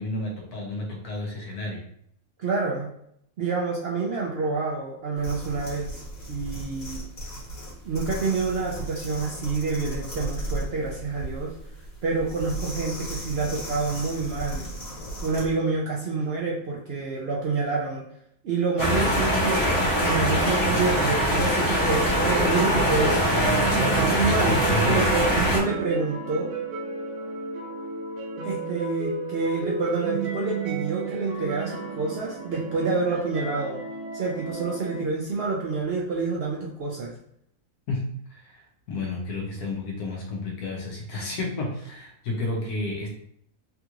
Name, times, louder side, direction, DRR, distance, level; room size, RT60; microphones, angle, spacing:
voice 1, 0.0-1.8 24.3-25.1 37.9-43.1, left 2 dB, 85° left, -1 dB, 1.3 m, -31 dB
voice 2, 2.4-2.9 3.4-6.0 6.3-7.0 7.8-11.5 12.0-14.7 15.2-18.0 18.4-19.6 20.0-23.2 23.7-26.5 28.4-33.8 34.1-37.1, right 4 dB, 65° right, -3 dB, 0.6 m, -28 dB
sound 1, 5.2-15.5, right 1 dB, 65° left, 1.5 m, -36 dB
sound 2, 18.8-25.6, equal, 20° left, 0.6 m, -22 dB
sound 3, 21.7-35.0, right 4 dB, 85° right, 1.3 m, -32 dB
3.5 x 2.4 x 2.9 m, 0.70 s
omnidirectional pair, 1.6 m